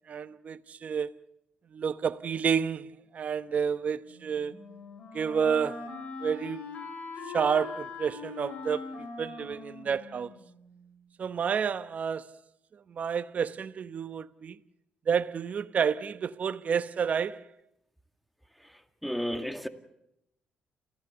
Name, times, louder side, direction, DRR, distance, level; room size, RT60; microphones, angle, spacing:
voice 1, 0.1-1.1 1.7-4.5 5.1-5.9 6.2-6.6 7.3-8.9 9.2-10.3 11.2-12.4 12.9-14.6 15.1-17.5, right 7 dB, 55° right, 0.9 m, -30 dB
Wind instrument woodwind instrument, 4.0-10.9, left 4 dB, 55° left, 7.9 m, -42 dB
voice 2, 18.6-19.7, equal, ahead, 2.1 m, -34 dB
29.0 x 15.5 x 7.0 m
supercardioid pair, 60°, 3 cm